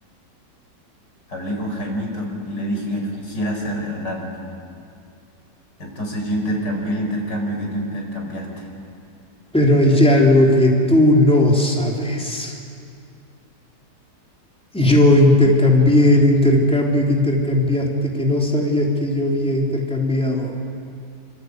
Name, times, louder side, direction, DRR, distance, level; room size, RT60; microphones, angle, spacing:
voice 1, 1.3-4.4 5.8-8.7, equal, 75° left, 1 dB, 5.8 m, -26 dB
voice 2, 9.5-12.5 14.7-20.6, left 1 dB, 5° left, -1 dB, 3.4 m, -16 dB
26.0 x 26.0 x 8.2 m, 2.4 s
omnidirectional pair, 1.9 m